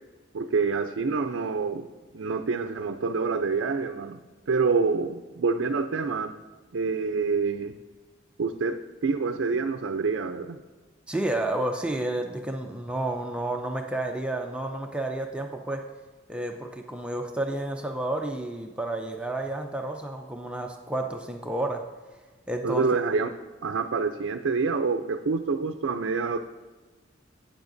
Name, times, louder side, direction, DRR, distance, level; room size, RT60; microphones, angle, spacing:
voice 1, 0.3-1.9 2.1-4.2 4.5-6.3 6.7-7.8 8.4-10.6 22.6-23.3 23.6-26.4, right 4 dB, 75° right, 6 dB, 0.5 m, -27 dB
voice 2, 11.1-15.8 16.3-21.8 22.5-22.9, right 1 dB, 5° right, 2 dB, 0.5 m, -30 dB
12.0 x 8.8 x 2.6 m, 1.3 s
head